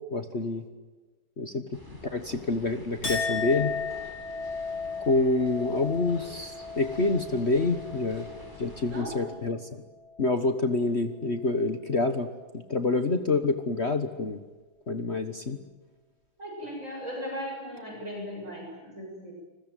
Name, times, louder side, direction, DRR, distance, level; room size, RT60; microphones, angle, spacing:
voice 1, 0.1-0.6 1.4-1.6 2.1-3.7 5.0-8.3 8.6-9.8 10.2-14.4 14.9-15.6, left 3 dB, 35° left, 9 dB, 1.4 m, -27 dB
sound 1, 1.7-9.0, left 1 dB, 10° right, 6.4 m, -48 dB
Chink clink, 3.0-9.6 10.0-10.6, left 4 dB, 80° left, 4.7 m, -36 dB
voice 2, 8.9-9.4 16.4-19.3, equal, 40° right, -2 dB, 7.5 m, -37 dB
30.0 x 20.5 x 9.1 m, 1.3 s
omnidirectional pair, 2.2 m